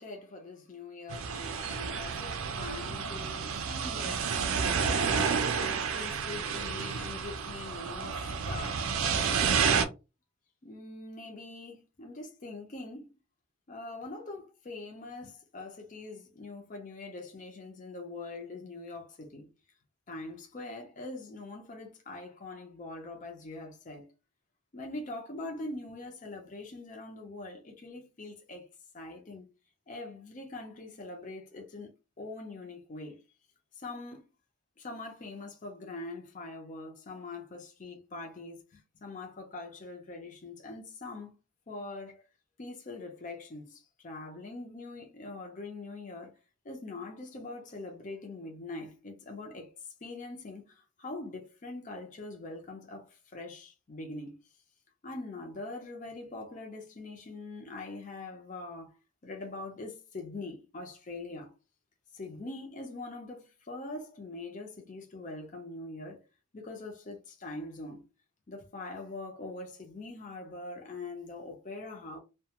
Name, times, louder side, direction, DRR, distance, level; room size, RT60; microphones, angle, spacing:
voice 1, 0.0-5.1 5.5-8.9 10.6-13.1 13.7-19.5 20.1-24.1 24.7-28.7 28.9-29.5 29.9-31.9 32.2-33.2 33.7-34.3 34.8-41.4 41.7-42.2 42.6-46.3 46.6-54.4 55.0-58.9 59.2-61.5 62.1-66.2 66.5-68.0 68.5-72.2, left 2 dB, 35° left, 0.6 m, -43 dB
sound 1, 1.1-9.8, right 6 dB, 70° right, 0.4 m, -30 dB
2.3 x 2.2 x 2.8 m
head